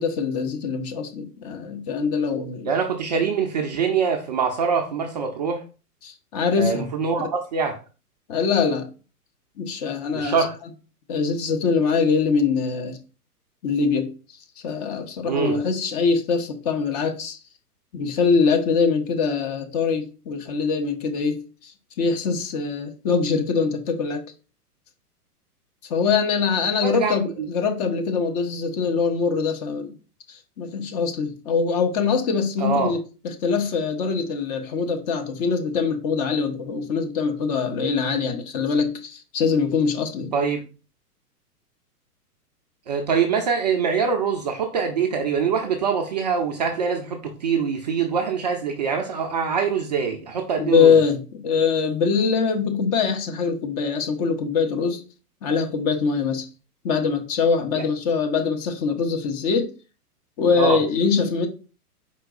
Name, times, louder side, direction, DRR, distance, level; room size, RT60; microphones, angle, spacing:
voice 1, 0.0-2.7 6.0-6.9 7.2-7.3 8.3-8.9 9.6-10.4 11.1-13.0 13.6-14.1 14.6-17.4 17.9-24.2 25.9-29.9 30.3-40.3 50.6-55.0 55.4-56.5 56.8-59.7 60.4-61.5, left 5 dB, 30° left, 0.5 m, -23 dB
voice 2, 2.6-5.6 6.6-7.8 10.1-10.6 15.2-15.6 26.8-27.5 32.6-32.9 40.3-40.6 42.9-50.9 57.8-57.9 60.6-60.8, right 6 dB, 30° right, 0.4 m, -24 dB
4.4 x 3.9 x 2.4 m
figure-of-eight pair, 110°, 47 cm